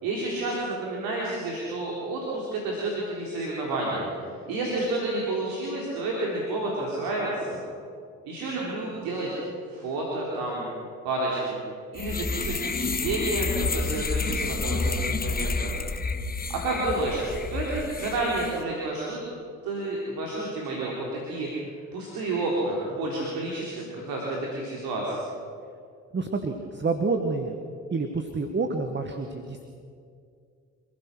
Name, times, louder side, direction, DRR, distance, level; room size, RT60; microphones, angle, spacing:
voice 1, 0.0-7.6 8.2-9.4 9.7-10.7 11.0-11.6 11.9-15.8 16.5-17.2 17.5-19.2 19.6-21.5 21.9-25.2, right 2 dB, 70° right, -3 dB, 4.1 m, -30 dB
sound 1, 12.0-18.6, left 3 dB, 25° left, 1.5 m, -29 dB
voice 2, 26.1-27.6 27.9-29.6, right 4 dB, 30° right, 6 dB, 1.8 m, -28 dB
27.0 x 15.5 x 6.3 m, 2.3 s
hypercardioid pair, 55°, 37 cm